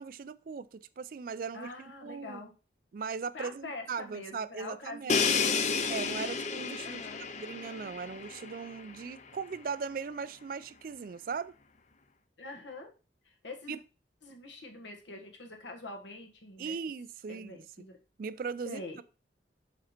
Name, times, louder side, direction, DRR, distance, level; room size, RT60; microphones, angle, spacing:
voice 1, 0.0-1.7 2.0-2.4 2.9-5.5 5.9-7.1 7.4-11.5 13.7-13.8 16.6-17.9 18.2-19.0, right 5 dB, 50° right, 0.3 m, -39 dB
voice 2, 1.5-2.5 3.3-5.4 6.8-7.2 12.4-12.9 13.2-13.8 14.2-16.8 17.3-18.0 18.6-19.0, left 2 dB, 80° left, 1.4 m, -44 dB
Crash cymbal, 5.1-8.9, left 5 dB, 40° left, 0.5 m, -31 dB
5.4 x 4.9 x 4.3 m
head